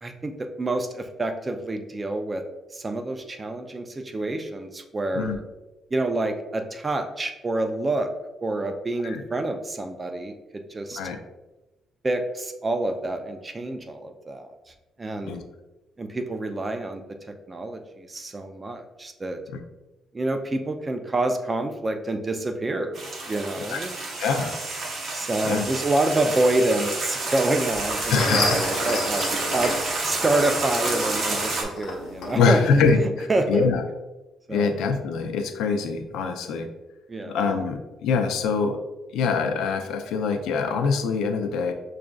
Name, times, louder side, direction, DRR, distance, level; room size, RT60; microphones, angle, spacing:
voice 1, 0.0-2.4 2.7-5.4 5.9-8.1 8.4-11.0 12.0-14.6 15.0-15.4 16.0-17.0 17.5-19.4 20.1-23.9 25.1-33.7 34.5-34.8 37.1-37.6, right 2 dB, 20° right, 6 dB, 0.4 m, -27 dB
sound 1, 22.9-31.6, right 3 dB, 45° right, 0.7 m, -29 dB
voice 2, 24.2-24.5 25.4-25.7 28.1-28.6 32.4-33.8 34.5-36.7 37.3-38.8 39.1-41.7, left 5 dB, 90° left, 6 dB, 0.4 m, -24 dB
sound 2, 27.7-32.9, left 2 dB, 65° left, 1.0 m, -31 dB
6.0 x 2.5 x 2.2 m, 1.1 s
cardioid pair, 130°, 0 cm